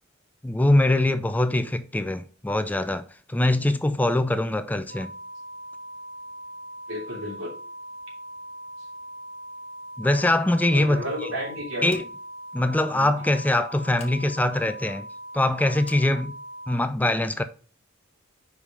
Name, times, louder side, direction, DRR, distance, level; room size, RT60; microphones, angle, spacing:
voice 1, 0.4-5.1 10.0-11.0 11.8-12.0 12.5-15.1 15.3-16.3 16.7-17.4, left 1 dB, 10° left, 0.3 m, -23 dB
sound 1, 4.9-16.8, right 1 dB, 45° right, 1.0 m, -40 dB
voice 2, 6.9-7.5 10.7-12.0 12.9-13.1, equal, 80° right, 2.9 m, -32 dB
Scissors, 11.8-12.4 13.9-14.2 15.8-16.1, left 5 dB, 30° left, 1.4 m, -48 dB
5.2 x 5.1 x 4.8 m
head